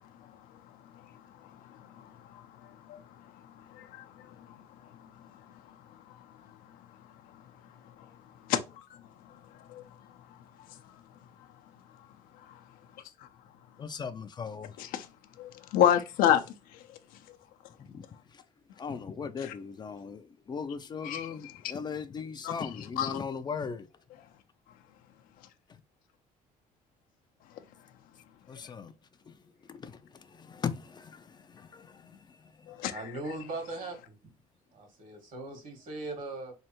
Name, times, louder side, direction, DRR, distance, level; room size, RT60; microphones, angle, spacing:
voice 1, 1.7-2.5 2.9-3.0 3.7-4.6 8.0-8.1 8.5-9.0 9.7-9.8 10.7-10.8 12.5-12.6 14.8-15.1 15.4-16.4 19.4-19.5 21.0-21.7 22.4-22.7 23.0-23.2 32.7-33.0, left 10 dB, 85° left, 0.5 m, -29 dB
voice 2, 13.8-14.7 17.8-18.0 18.8-23.9 28.5-28.9 29.3-29.4 29.7-30.0 30.3-32.2, left 6 dB, 30° left, 0.4 m, -38 dB
voice 3, 32.9-34.1 34.7-36.5, right 2 dB, 65° right, 1.6 m, -39 dB
3.6 x 3.2 x 2.9 m
cardioid pair, 110°, 15 cm